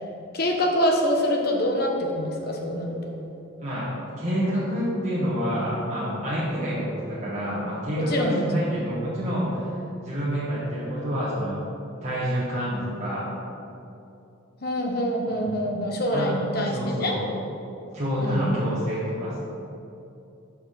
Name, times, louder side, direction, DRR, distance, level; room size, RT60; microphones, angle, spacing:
voice 1, 0.3-3.1 8.0-8.5 14.6-17.1 18.2-18.6, equal, 45° left, 0 dB, 0.9 m, -25 dB
voice 2, 3.6-3.9 4.2-9.7 10.0-11.6 12.0-13.3 15.3-15.6 16.1-16.3 16.6-17.2 17.9-19.4, equal, 35° right, -9 dB, 1.2 m, -28 dB
5.6 x 4.8 x 6.3 m, 2.8 s
head